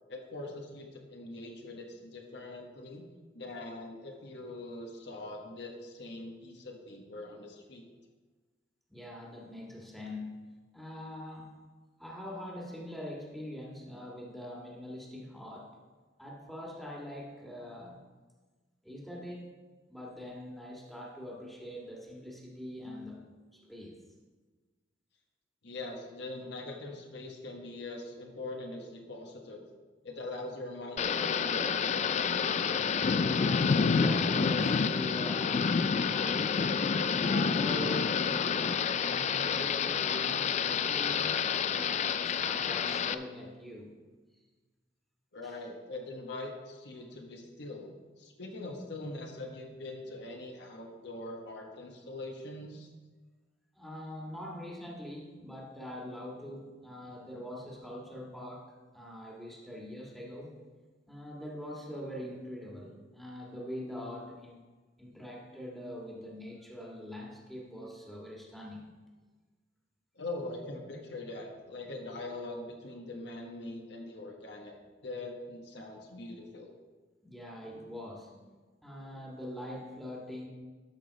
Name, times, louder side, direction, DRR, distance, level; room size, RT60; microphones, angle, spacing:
voice 1, 0.1-3.0 3.3-7.8 25.6-29.6 30.0-32.3 45.3-47.9 48.2-52.9 70.1-76.7, left 2 dB, 65° left, 1 dB, 1.3 m, -42 dB
voice 2, 8.9-10.5 10.7-11.6 12.0-15.7 16.2-18.0 18.8-19.5 19.9-23.2 23.5-24.0 32.6-32.7 33.4-36.7 37.1-43.9 45.4-45.6 53.7-60.6 61.1-64.6 65.0-68.9 77.2-78.5 78.8-80.5, equal, ahead, -4 dB, 1.7 m, -43 dB
Thunder / Rain, 31.0-43.1, left 6 dB, 40° left, 0.3 m, -28 dB
13.0 x 6.1 x 4.0 m, 1.3 s
head